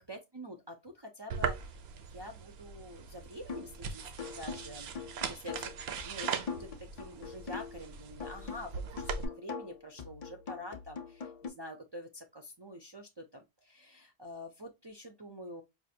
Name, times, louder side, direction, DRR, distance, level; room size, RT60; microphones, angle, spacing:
voice 1, 0.1-1.7 2.1-4.9 5.3-5.7 6.1-15.6, equal, 40° right, 0.4 m, -47 dB
sound 1, 1.3-9.2, right 6 dB, 75° right, 0.8 m, -40 dB
sound 2, 3.5-3.8 4.2-7.9 8.2-11.5, left 6 dB, 45° left, 0.5 m, -43 dB
4.8 x 2.4 x 2.6 m
omnidirectional pair, 1.1 m